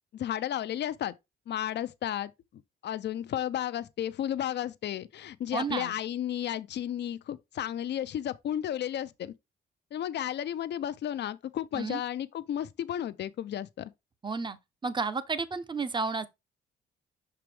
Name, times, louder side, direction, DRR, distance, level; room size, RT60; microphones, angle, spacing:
voice 1, 0.1-1.1 1.5-2.3 2.8-9.3 9.9-13.9, left 11 dB, 60° left, 0.6 m, -33 dB
voice 2, 5.5-6.0 11.7-12.0 14.2-14.6 14.8-16.3, right 4 dB, 25° right, 0.8 m, -31 dB
5.9 x 4.7 x 3.4 m
cardioid pair, 90°, 20 cm